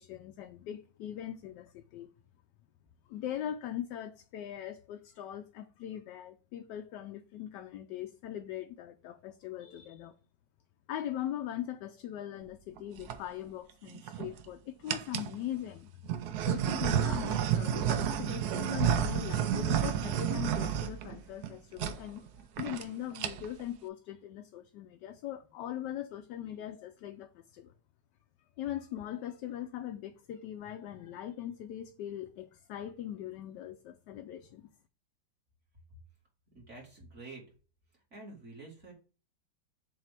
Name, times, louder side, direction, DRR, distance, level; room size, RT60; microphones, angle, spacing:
voice 1, 0.0-2.1 3.1-10.2 10.9-15.9 16.4-22.2 22.6-27.7 28.6-34.7, left 11 dB, 75° left, 1.1 m, -40 dB
sound 1, 12.8-13.2 13.9-14.4 14.9-15.4 16.1-21.5 21.8-22.0 22.3-22.4 22.6-22.9 23.1-23.6, right 9 dB, 70° right, 1.0 m, -31 dB
voice 2, 36.5-37.4 38.1-38.9, right 3 dB, 40° right, 2.3 m, -48 dB
7.3 x 2.7 x 5.8 m
omnidirectional pair, 2.0 m